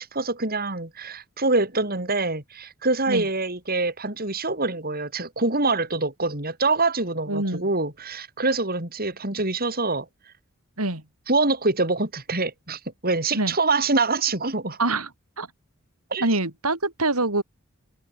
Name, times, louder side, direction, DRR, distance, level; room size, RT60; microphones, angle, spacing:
voice 1, 0.0-10.1 11.3-14.8 16.1-16.3, right 3 dB, 45° right, 6.7 m, -25 dB
voice 2, 7.3-7.7 10.8-11.0 13.3-13.5 14.8-15.1 15.4-15.5 16.2-17.4, right 2 dB, 90° right, 7.4 m, -25 dB
head